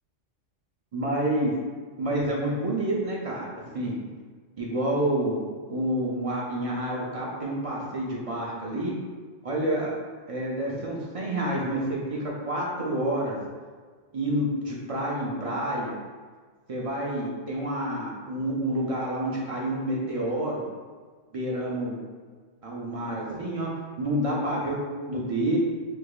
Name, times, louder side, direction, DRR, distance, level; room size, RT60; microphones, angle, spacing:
voice 1, 0.9-1.5 2.0-3.9 4.6-5.4 5.7-8.9 9.4-9.9 10.3-12.2 12.5-13.3 14.1-15.9 16.7-20.6 21.3-22.0 22.6-23.7 24.0-25.6, right 1 dB, 55° right, -4 dB, 0.4 m, -28 dB
4.7 x 2.6 x 2.3 m, 1.5 s
omnidirectional pair, 1.3 m